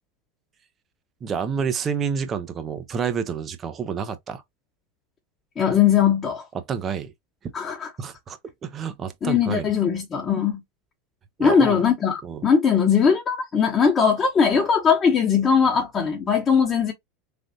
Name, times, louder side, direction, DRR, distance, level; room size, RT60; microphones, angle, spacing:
voice 1, 1.2-4.4 6.7-7.1 8.0-9.7 11.4-11.8 12.2-12.4, right 6 dB, 30° right, 0.7 m, -29 dB
voice 2, 5.6-6.5 7.5-7.9 9.2-10.6 11.4-16.9, left 7 dB, 30° left, 0.9 m, -20 dB
3.4 x 2.5 x 2.6 m
hypercardioid pair, 85°, 0 cm